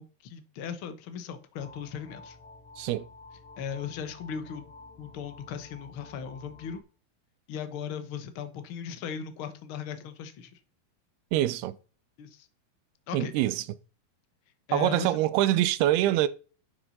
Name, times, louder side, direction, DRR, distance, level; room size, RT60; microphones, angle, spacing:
voice 1, 0.0-2.4 3.6-4.7 5.0-6.8 7.5-10.6 12.2-12.5 13.1-13.3 14.7-15.2, left 7 dB, 85° left, 1.1 m, -37 dB
sound 1, 1.6-6.8, left 3 dB, 70° left, 4.3 m, -51 dB
voice 2, 2.8-3.1 11.3-11.8 13.1-13.6 14.7-16.3, right 14 dB, 85° right, 2.7 m, -25 dB
11.5 x 6.5 x 4.2 m
omnidirectional pair, 4.5 m